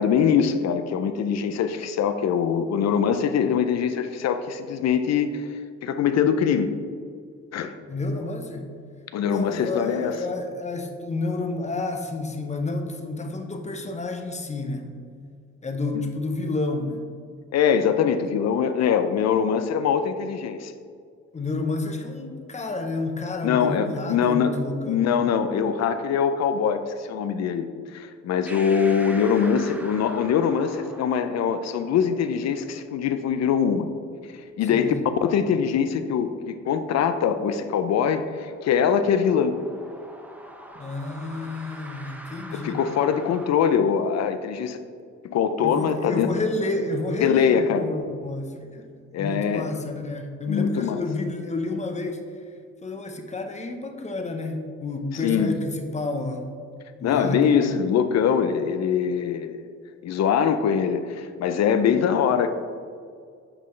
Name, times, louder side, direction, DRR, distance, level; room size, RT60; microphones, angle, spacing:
voice 1, 0.0-5.5 5.8-6.7 7.5-7.7 9.1-10.1 17.5-20.7 23.4-24.6 24.9-33.9 34.6-34.9 35.2-39.6 42.5-44.8 45.2-46.3 47.2-47.9 49.1-49.7 50.5-51.0 55.2-55.5 57.0-59.6 60.0-62.5, left 7 dB, 60° left, 9 dB, 0.5 m, -23 dB
voice 2, 7.9-8.7 9.2-14.9 15.6-17.1 21.3-25.2 34.7-35.0 40.7-42.8 45.6-48.9 49.2-52.2 52.8-56.5 57.0-57.7, left 2 dB, 25° left, 5 dB, 0.8 m, -30 dB
sound 1, 28.5-43.5, right 1 dB, 5° right, 0.6 m, -45 dB
8.9 x 4.1 x 3.2 m, 2.2 s
cardioid pair, 90°, 30 cm